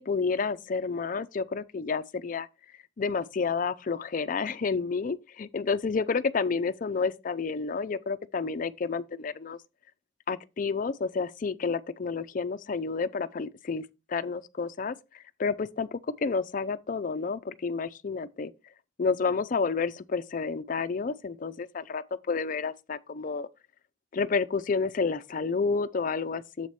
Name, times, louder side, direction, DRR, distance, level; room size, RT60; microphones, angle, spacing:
voice 1, 0.0-2.5 3.0-9.6 10.3-18.5 19.0-23.5 24.1-26.7, left 4 dB, 45° left, 0.4 m, -30 dB
7.4 x 4.7 x 4.2 m
head